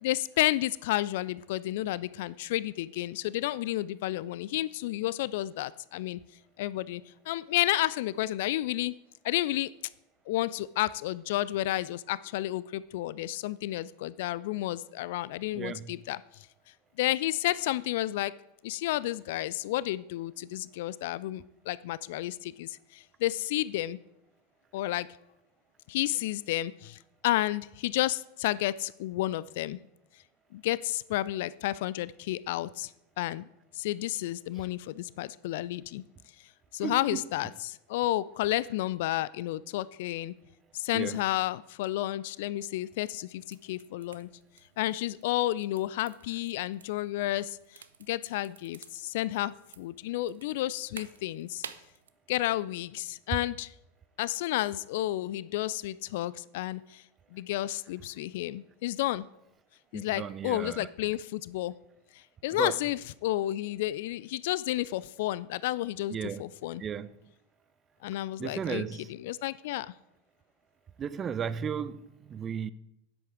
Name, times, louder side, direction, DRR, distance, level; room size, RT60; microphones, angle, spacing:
voice 1, 0.0-6.2 6.6-8.9 9.2-9.7 10.3-16.5 17.0-18.3 18.6-24.0 24.7-25.1 25.9-29.8 30.5-32.9 33.2-33.5 33.7-36.0 36.7-40.3 40.7-44.3 44.8-51.6 52.3-53.7 54.2-57.0 57.3-59.3 59.9-61.7 62.1-66.8 68.0-69.9, left 15 dB, 55° left, 0.3 m, -31 dB
voice 2, 15.5-15.9 36.8-37.2 40.9-41.2 59.9-60.9 62.6-62.8 66.1-66.4 66.8-67.1 68.4-69.1 71.0-72.7, right 7 dB, 25° right, 0.5 m, -35 dB
sound 1, 43.3-52.1, right 7 dB, 70° right, 0.5 m, -52 dB
9.6 x 7.7 x 4.8 m
figure-of-eight pair, 85°, 0 cm